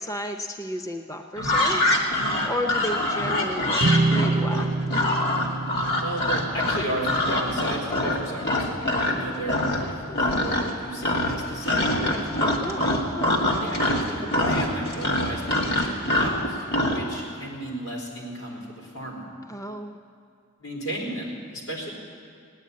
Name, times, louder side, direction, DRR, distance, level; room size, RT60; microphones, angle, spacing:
voice 1, 0.0-4.8 12.4-13.4 19.5-20.0, equal, 15° left, 4 dB, 0.6 m, -33 dB
sound 1, 1.4-9.2 9.5-9.9 10.1-10.8 11.0-17.0, left 1 dB, 50° left, 2.0 m, -24 dB
sound 2, 3.8-10.2, right 2 dB, 45° right, 0.5 m, -29 dB
voice 2, 5.9-8.7 9.0-12.2 13.6-19.2 20.6-21.9, right 1 dB, 80° left, -2 dB, 4.1 m, -34 dB
17.0 x 10.0 x 8.4 m, 2.3 s
head